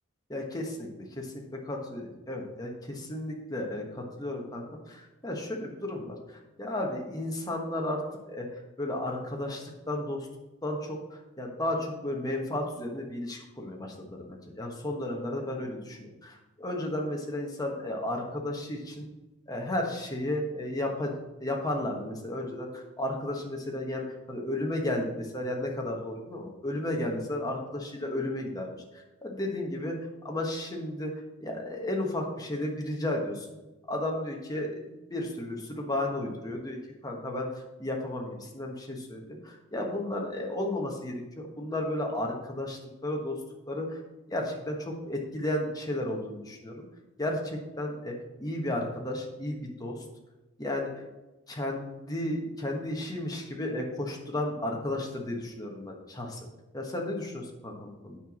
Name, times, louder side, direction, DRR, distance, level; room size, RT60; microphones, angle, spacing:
voice 1, 0.3-0.9 1.2-1.3 1.5-8.0 8.3-10.3 10.6-19.1 19.5-30.0 30.2-31.1 31.4-33.5 33.9-36.8 37.0-43.4 43.7-44.0 44.3-46.8 47.2-50.0 50.6-51.0 51.5-56.5 56.7-58.2, left 1 dB, 20° left, 0 dB, 1.4 m, -33 dB
9.0 x 4.6 x 6.2 m, 1.0 s
head